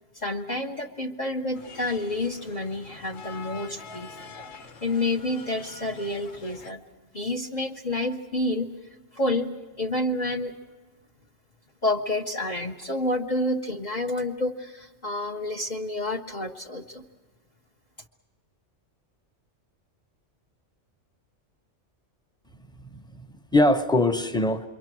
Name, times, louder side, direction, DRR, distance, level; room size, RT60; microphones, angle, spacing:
voice 1, 0.1-4.1 4.8-6.8 7.1-8.7 9.1-9.5 9.8-10.5 11.8-17.0, left 1 dB, 40° left, 6 dB, 0.8 m, -29 dB
sound 1, 1.5-6.7, left 4 dB, 90° left, 1.5 m, -45 dB
voice 2, 22.8-24.7, left 1 dB, 5° left, 7 dB, 0.6 m, -23 dB
27.5 x 23.0 x 6.0 m, 1.3 s
omnidirectional pair, 1.3 m